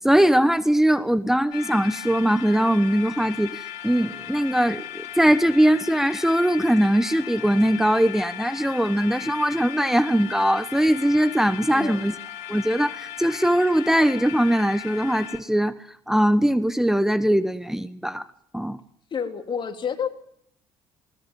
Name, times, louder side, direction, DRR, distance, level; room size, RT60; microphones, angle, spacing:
voice 1, 0.0-4.8 5.2-12.1 12.5-18.2 18.5-18.8, equal, 5° right, 1.1 m, -21 dB
sound 1, 1.5-15.4, left 12 dB, 70° left, 2.0 m, -37 dB
voice 2, 11.7-12.1 19.1-20.1, left 7 dB, 45° left, 3.3 m, -29 dB
22.0 x 20.0 x 7.4 m
hypercardioid pair, 60°, 12 cm